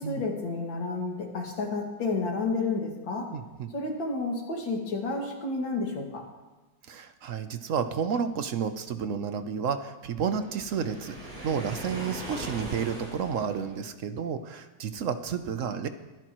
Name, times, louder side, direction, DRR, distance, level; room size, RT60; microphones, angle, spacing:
voice 1, 0.0-3.3 3.7-6.2, left 3 dB, 80° left, 0 dB, 2.9 m, -31 dB
voice 2, 3.3-3.7 6.9-15.9, right 7 dB, 60° right, 9 dB, 0.8 m, -31 dB
Waves surf, 10.4-13.9, equal, 90° right, 6.1 m, -40 dB
23.5 x 10.5 x 3.0 m, 1.2 s
omnidirectional pair, 2.0 m